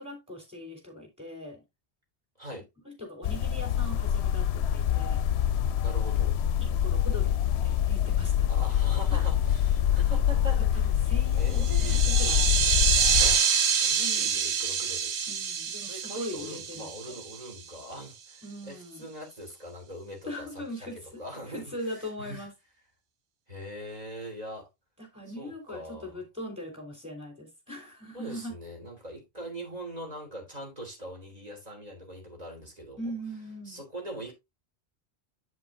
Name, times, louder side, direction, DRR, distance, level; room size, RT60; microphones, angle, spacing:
voice 1, 0.0-1.6 2.8-5.2 6.6-7.3 7.6-8.5 9.1-9.3 10.6-12.5 14.0-14.4 15.3-17.2 18.4-19.1 20.2-21.2 21.5-22.5 25.0-28.5 33.0-33.8, equal, 5° right, 3.9 m, -40 dB
sound 1, 3.2-13.4, left 10 dB, 75° left, 0.8 m, -25 dB
voice 2, 5.8-6.4 8.5-10.9 11.3-12.1 12.6-12.9 13.8-15.1 15.9-20.5 20.8-22.5 23.5-24.7 25.4-26.1 28.1-33.1 33.6-34.3, right 1 dB, 35° right, 3.1 m, -42 dB
sound 2, 11.5-17.6, right 7 dB, 80° right, 1.2 m, -27 dB
8.2 x 7.5 x 2.6 m
omnidirectional pair, 1.1 m